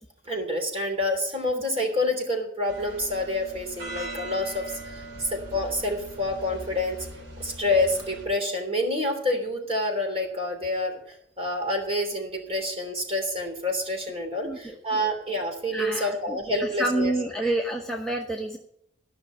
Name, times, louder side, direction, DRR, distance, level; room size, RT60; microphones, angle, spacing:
voice 1, 0.2-7.0 7.4-17.1 17.4-17.5, left 1 dB, 30° right, 2 dB, 3.2 m, -28 dB
sound 1, 2.7-8.3, right 1 dB, 80° right, 3.7 m, -40 dB
voice 2, 14.4-15.0 15.7-18.6, right 1 dB, 5° left, -1 dB, 1.0 m, -29 dB
14.0 x 6.1 x 8.4 m, 0.73 s
head